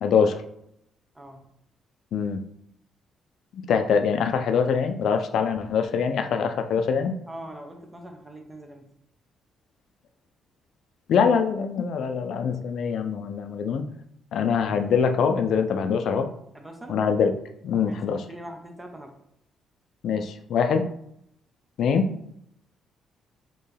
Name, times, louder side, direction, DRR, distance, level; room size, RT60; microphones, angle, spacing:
voice 1, 0.0-0.4 2.1-2.4 3.5-7.1 11.1-13.8 14.3-16.3 16.9-17.3 17.6-18.3 20.0-20.9 21.8-22.2, left 6 dB, 70° left, 6 dB, 0.4 m, -23 dB
voice 2, 1.1-1.5 7.3-8.9 16.5-17.0 17.9-19.2, right 1 dB, 15° right, 4 dB, 0.8 m, -42 dB
4.4 x 3.1 x 3.3 m, 0.73 s
cardioid pair, 90°, 0 cm